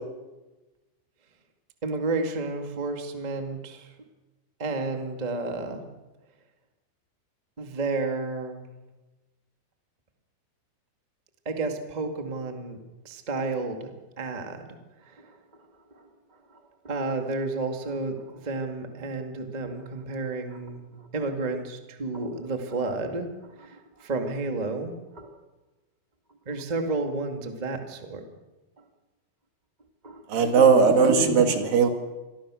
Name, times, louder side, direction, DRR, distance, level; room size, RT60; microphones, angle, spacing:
voice 1, 1.8-3.9 4.6-5.8 7.6-8.7 11.4-12.8 13.0-13.8 14.2-14.8 15.0-15.4 15.9-16.1 16.8-25.4 26.4-28.2 28.8-28.9 30.0-30.2, right 3 dB, 15° right, 4 dB, 1.5 m, -31 dB
voice 2, 30.3-31.9, right 5 dB, 70° right, 5 dB, 3.7 m, -18 dB
27.0 x 21.0 x 6.4 m, 1.1 s
omnidirectional pair, 4.2 m